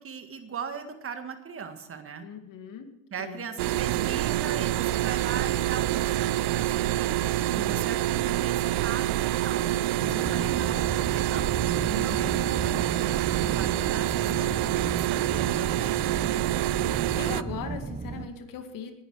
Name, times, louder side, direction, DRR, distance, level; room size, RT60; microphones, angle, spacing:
voice 1, 0.0-2.3 3.1-7.1 7.5-9.7 10.1-10.9 11.1-11.6 11.9-16.2, right 6 dB, 30° right, 7 dB, 1.8 m, -39 dB
voice 2, 2.2-2.9 3.2-3.5 7.6-8.0 10.0-10.4 11.8-12.4 16.7-18.9, left 6 dB, 50° left, 7 dB, 2.2 m, -40 dB
sound 1, 3.6-17.4, right 14 dB, 65° right, 0.6 m, -26 dB
sound 2, 10.0-18.3, right 4 dB, 15° right, 1.0 m, -35 dB
19.5 x 11.0 x 4.9 m, 0.94 s
supercardioid pair, 100°, 41 cm